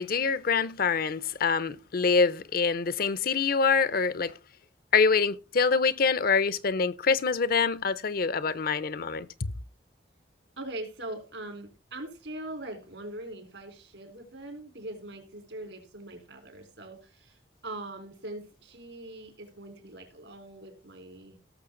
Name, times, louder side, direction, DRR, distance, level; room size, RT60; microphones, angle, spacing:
voice 1, 0.0-4.3 4.9-9.5, left 5 dB, 55° left, 0.6 m, -25 dB
voice 2, 10.6-21.4, right 1 dB, 80° right, 4.0 m, -42 dB
17.5 x 6.8 x 3.8 m
head